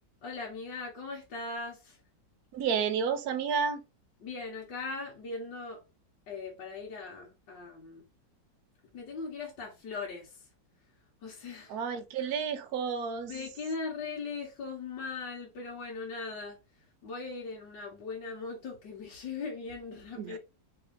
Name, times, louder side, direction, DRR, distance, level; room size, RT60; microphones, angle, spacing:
voice 1, 0.2-2.0 4.2-5.8 6.3-8.0 8.9-10.4 11.2-11.8 13.3-16.6 17.0-20.4, left 4 dB, 75° left, 2.0 m, -39 dB
voice 2, 2.5-3.8 11.7-13.3 20.2-20.4, right 6 dB, 65° right, 1.1 m, -31 dB
4.1 x 2.6 x 4.8 m
omnidirectional pair, 1.9 m